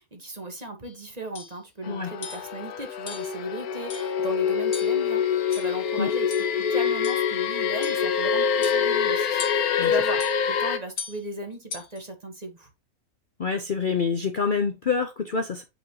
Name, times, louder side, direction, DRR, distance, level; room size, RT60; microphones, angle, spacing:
voice 1, 0.0-6.3 6.6-12.7, right 1 dB, 30° right, 1.4 m, -37 dB
sound 1, 0.8-1.0 1.3-1.6 2.2-2.5 3.1-3.4 3.9-4.2 4.7-5.1 5.5-5.9 6.3-6.5 7.0-7.3 7.8-8.1 8.6-9.0 9.4-9.8 10.2-10.4 11.0-11.2 11.7-12.0, left 6 dB, 60° left, 1.5 m, -39 dB
sound 2, 1.8-10.8, left 7 dB, 80° left, 1.3 m, -25 dB
voice 2, 13.4-15.6, left 5 dB, 45° left, 0.7 m, -26 dB
8.2 x 4.4 x 2.9 m
omnidirectional pair, 1.6 m